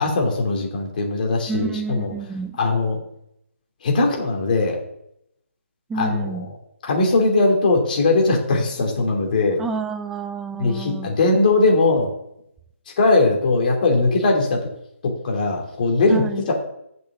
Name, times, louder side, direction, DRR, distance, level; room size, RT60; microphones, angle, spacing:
voice 1, 0.0-2.1 2.6-3.0 3.8-4.8 5.9-6.4 6.8-9.6 10.6-12.1 13.0-14.6 15.0-16.5, left 3 dB, 40° left, 0 dB, 2.7 m, -20 dB
voice 2, 1.5-2.6 5.9-6.5 9.6-11.1 16.1-16.5, right 4 dB, 5° right, 8 dB, 0.4 m, -29 dB
7.2 x 6.1 x 7.3 m, 0.77 s
figure-of-eight pair, 145°, 7 cm